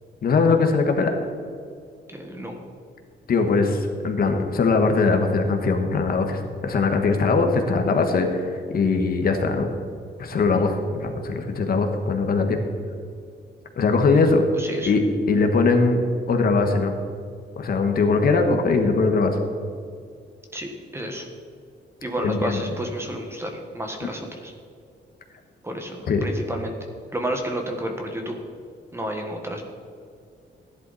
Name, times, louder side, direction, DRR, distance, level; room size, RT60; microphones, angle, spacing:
voice 1, 0.2-1.1 3.3-9.7 10.2-12.6 13.8-14.4 14.8-15.0 15.3-16.0 16.3-16.9 17.6-19.4 22.2-22.6 26.1-26.2, left 4 dB, 50° left, 4 dB, 1.4 m, -21 dB
voice 2, 2.1-2.6 10.5-10.6 14.1-14.2 14.6-14.9 20.5-21.3 22.0-24.5 25.6-26.7 27.1-28.4 28.9-29.7, right 1 dB, 15° right, 3 dB, 1.4 m, -31 dB
16.5 x 11.0 x 4.1 m, 2.3 s
wide cardioid pair, 175°, 19 cm